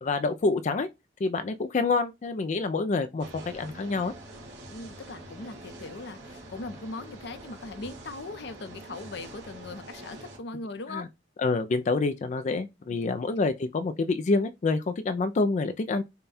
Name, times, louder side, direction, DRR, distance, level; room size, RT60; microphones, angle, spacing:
voice 1, 0.0-0.9 1.2-4.1 10.9-11.1 11.4-16.0, left 3 dB, 40° left, 0.4 m, -27 dB
sound 1, 3.2-10.4, right 1 dB, 70° right, 1.9 m, -45 dB
voice 2, 4.7-11.1, left 3 dB, 65° left, 0.7 m, -40 dB
5.3 x 2.2 x 4.2 m
head